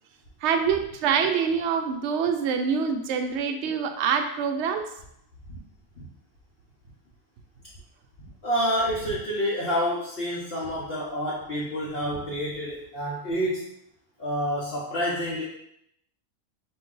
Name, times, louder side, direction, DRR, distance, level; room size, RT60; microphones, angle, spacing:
voice 1, 0.4-4.9, right 6 dB, 65° right, 6 dB, 0.8 m, -25 dB
voice 2, 8.4-13.7 14.2-15.4, equal, 50° left, -5 dB, 0.9 m, -28 dB
4.3 x 2.6 x 3.6 m, 0.75 s
omnidirectional pair, 1.4 m